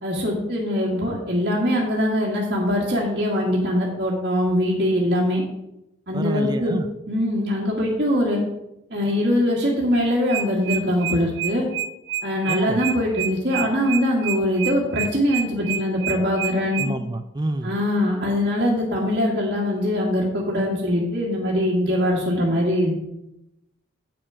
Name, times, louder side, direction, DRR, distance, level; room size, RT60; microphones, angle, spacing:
voice 1, 0.0-5.4 6.1-6.8 7.1-8.4 8.9-11.7 12.2-16.9 17.6-22.9, left 1 dB, 50° right, -7 dB, 1.7 m, -22 dB
voice 2, 6.1-6.9 12.5-12.8 16.8-17.7, right 2 dB, 20° right, 8 dB, 0.4 m, -27 dB
sound 1, 10.1-16.9, right 10 dB, 85° right, 0.6 m, -28 dB
8.8 x 5.9 x 4.9 m, 0.86 s
head